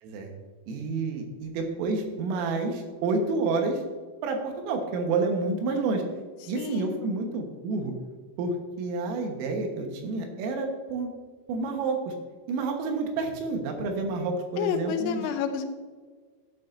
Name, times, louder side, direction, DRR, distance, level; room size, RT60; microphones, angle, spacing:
voice 1, 0.7-3.8 4.2-6.0 6.5-7.9 8.4-11.1 11.5-12.1 12.5-15.3, right 3 dB, 85° right, 3 dB, 3.9 m, -29 dB
voice 2, 6.6-6.9 14.6-15.7, left 7 dB, 80° left, 5 dB, 2.5 m, -29 dB
12.5 x 10.0 x 2.6 m, 1.5 s
omnidirectional pair, 5.8 m